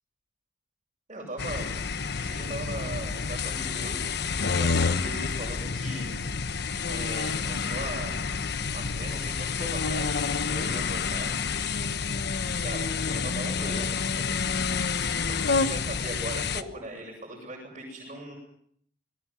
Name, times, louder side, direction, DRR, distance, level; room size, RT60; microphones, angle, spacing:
voice 1, 1.1-1.7 2.2-6.1 6.9-8.1 8.5-11.5 12.4-14.2 14.9-18.3, right 1 dB, 35° right, -2 dB, 7.5 m, -39 dB
sound 1, 1.4-16.6, left 5 dB, 60° left, 1.1 m, -29 dB
27.0 x 19.5 x 7.6 m, 0.66 s
head